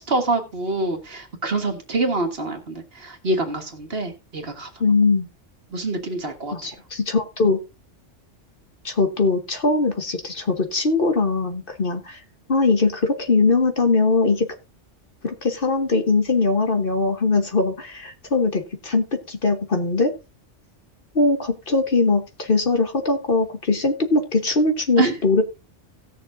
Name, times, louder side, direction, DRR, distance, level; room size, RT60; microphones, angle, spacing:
voice 1, 0.0-4.7 5.7-6.8 25.0-25.1, right 2 dB, 55° right, 4 dB, 1.8 m, -26 dB
voice 2, 4.8-5.3 6.5-7.6 8.8-12.2 12.5-14.5 15.2-20.1 21.1-25.4, left 3 dB, 50° left, 6 dB, 1.3 m, -21 dB
17.5 x 6.7 x 2.6 m, 0.28 s
omnidirectional pair, 1.2 m